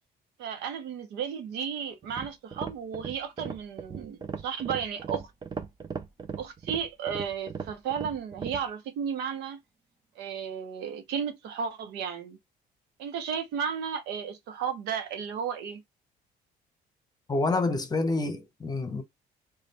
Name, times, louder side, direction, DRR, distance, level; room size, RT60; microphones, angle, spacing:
voice 1, 0.4-5.3 6.4-9.6 10.2-12.4 13.0-15.8, right 7 dB, 80° right, 0.9 m, -34 dB
sound 1, 2.0-8.7, right 5 dB, 25° right, 0.6 m, -38 dB
voice 2, 17.3-19.0, left 3 dB, 25° left, 0.8 m, -28 dB
3.2 x 2.4 x 4.0 m
cardioid pair, 110°, 17 cm